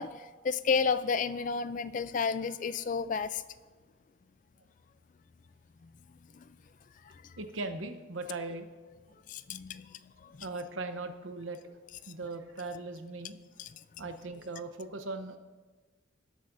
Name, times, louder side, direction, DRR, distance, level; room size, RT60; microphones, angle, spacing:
voice 1, 0.0-3.4 6.3-6.4 7.1-7.2 9.3-10.5 13.6-13.7, left 5 dB, 40° left, 14 dB, 0.3 m, -32 dB
voice 2, 7.4-8.7 9.1-9.2 10.3-11.8 12.1-13.4 14.0-15.4, right 3 dB, 85° right, 8 dB, 0.8 m, -39 dB
18.0 x 8.3 x 2.6 m, 1.3 s
head